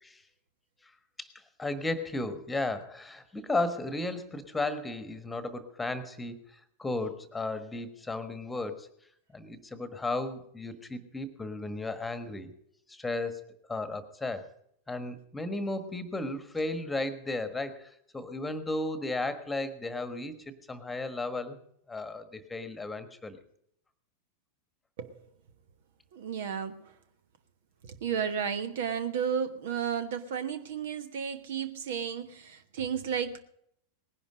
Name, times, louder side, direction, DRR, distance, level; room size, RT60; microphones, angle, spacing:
voice 1, 1.2-8.9 9.3-12.5 12.9-13.4 13.7-14.5 14.9-21.6 21.9-23.4, left 2 dB, 10° left, 11 dB, 1.5 m, -34 dB
voice 2, 26.1-26.8 27.8-33.4, right 7 dB, 55° right, 11 dB, 1.2 m, -33 dB
19.0 x 11.0 x 5.1 m, 0.71 s
figure-of-eight pair, 90°, 0 cm